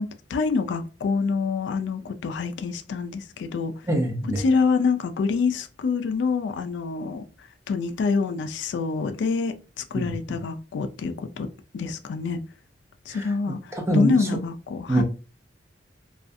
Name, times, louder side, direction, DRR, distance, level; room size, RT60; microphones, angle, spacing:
voice 1, 0.0-3.7 4.4-11.5 11.7-12.4 13.1-15.0, left 4 dB, 75° left, 0.3 m, -26 dB
voice 2, 3.9-4.4 9.9-10.1 13.1-13.3 13.7-14.2 14.9-15.0, right 1 dB, 15° right, 0.6 m, -24 dB
2.5 x 2.4 x 2.5 m
head